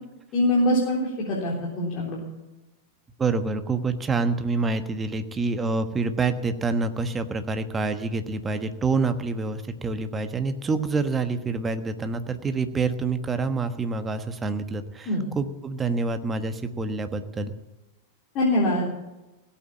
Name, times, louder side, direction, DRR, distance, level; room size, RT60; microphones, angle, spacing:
voice 1, 0.3-2.2 15.1-15.2 18.3-18.9, left 1 dB, 40° left, -4 dB, 3.6 m, -23 dB
voice 2, 3.2-17.5, right 4 dB, 20° right, 9 dB, 1.3 m, -27 dB
17.0 x 8.8 x 7.3 m, 1.0 s
figure-of-eight pair, 95°, 0 cm